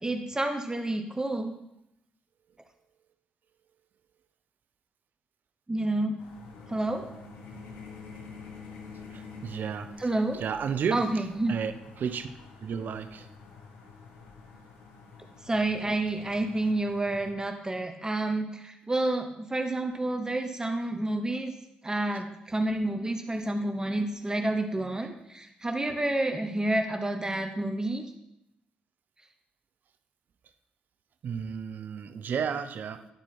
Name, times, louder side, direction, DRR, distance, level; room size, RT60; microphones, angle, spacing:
voice 1, 0.0-1.5 5.7-6.2 6.7-7.0 10.0-10.4 10.9-11.5 15.5-21.5 21.8-28.0, right 2 dB, 20° right, 5 dB, 0.9 m, -29 dB
sound 1, 6.2-17.3, left 4 dB, 85° left, 1.0 m, -48 dB
voice 2, 9.1-12.3 12.6-13.3 22.1-22.2 25.9-26.0 31.2-33.1, right 7 dB, 65° right, 9 dB, 0.6 m, -33 dB
11.5 x 4.4 x 4.3 m, 0.84 s
supercardioid pair, 50°, 3 cm